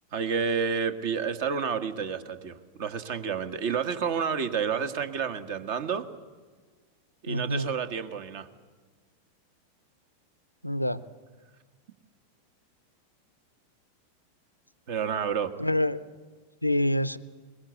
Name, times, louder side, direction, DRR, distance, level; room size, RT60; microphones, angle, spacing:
voice 1, 0.1-6.1 7.2-8.5 14.9-15.5, right 6 dB, 50° right, 10 dB, 1.4 m, -30 dB
voice 2, 7.3-7.7 10.6-11.0 15.6-16.1 16.6-17.2, left 1 dB, 90° left, 16 dB, 0.6 m, -26 dB
21.5 x 20.5 x 8.1 m, 1.4 s
figure-of-eight pair, 90°, 0 cm